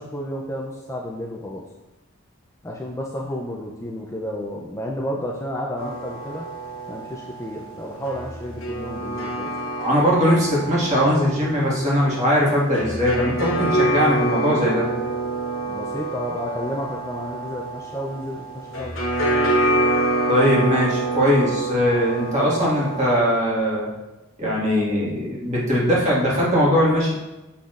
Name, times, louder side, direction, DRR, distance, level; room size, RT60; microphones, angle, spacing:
voice 1, 0.0-1.6 2.6-6.4 6.9-9.5 15.7-18.9, equal, 15° left, -2 dB, 0.4 m, -31 dB
sound 1, 5.8-23.2, right 1 dB, 60° left, 1.0 m, -27 dB
voice 2, 9.8-14.9 20.3-23.9 24.4-27.1, equal, 30° right, -5 dB, 1.7 m, -20 dB
6.9 x 6.0 x 2.5 m, 1.0 s
head